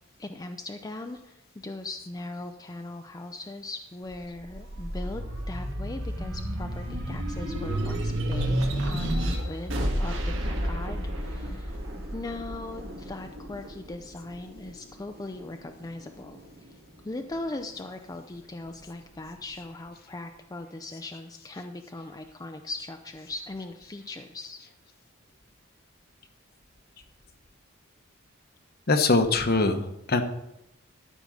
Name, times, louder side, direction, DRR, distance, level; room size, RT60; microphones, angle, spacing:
voice 1, 0.2-11.8 12.1-16.8 17.0-24.6, left 2 dB, 20° left, 6 dB, 0.5 m, -39 dB
sound 1, 4.1-14.9 15.4-16.6, right 1 dB, 70° right, 2.1 m, -31 dB
voice 2, 28.9-30.2, left 3 dB, 50° left, 7 dB, 1.0 m, -22 dB
12.5 x 5.3 x 6.3 m, 0.84 s
head